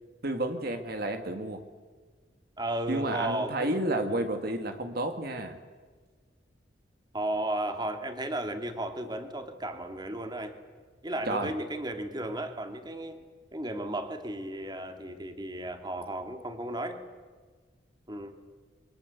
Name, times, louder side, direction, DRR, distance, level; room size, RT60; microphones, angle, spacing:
voice 1, 0.2-1.7 2.9-5.6 11.3-11.5, right 1 dB, 55° right, 6 dB, 2.0 m, -31 dB
voice 2, 2.6-4.2 7.1-10.5 11.0-13.2 13.5-17.0 18.1-18.3, right 1 dB, 25° right, 6 dB, 2.4 m, -34 dB
28.5 x 23.5 x 8.2 m, 1.4 s
head